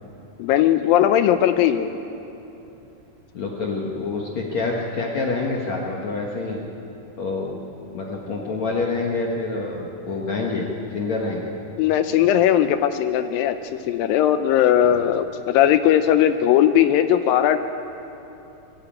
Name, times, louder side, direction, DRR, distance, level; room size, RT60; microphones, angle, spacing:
voice 1, 0.4-1.9 11.8-17.6, left 10 dB, 85° left, 9 dB, 2.0 m, -18 dB
voice 2, 3.3-6.6 7.2-7.6 7.9-11.5 14.8-15.0, left 3 dB, 55° left, -2 dB, 2.2 m, -27 dB
22.5 x 15.0 x 8.7 m, 3.0 s
omnidirectional pair, 4.8 m